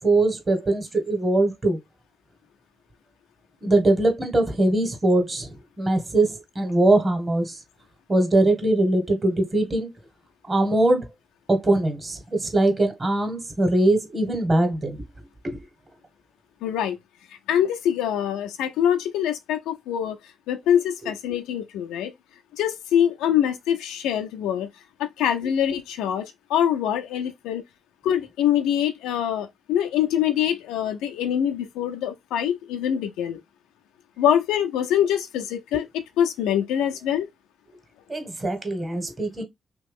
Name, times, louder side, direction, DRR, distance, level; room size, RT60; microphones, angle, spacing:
voice 1, 0.0-1.8 3.6-7.6 8.1-9.9 10.5-11.1 11.5-15.0 15.4-15.6 35.7-35.8 38.1-39.4, right 2 dB, 40° right, 1.6 m, -22 dB
voice 2, 16.6-17.0 17.5-20.2 20.5-22.1 22.6-24.7 25.0-26.2 26.5-27.6 28.0-33.4 34.2-35.9 36.2-37.3, left 10 dB, 85° left, 0.5 m, -24 dB
3.0 x 2.9 x 3.6 m
hypercardioid pair, 45°, 0 cm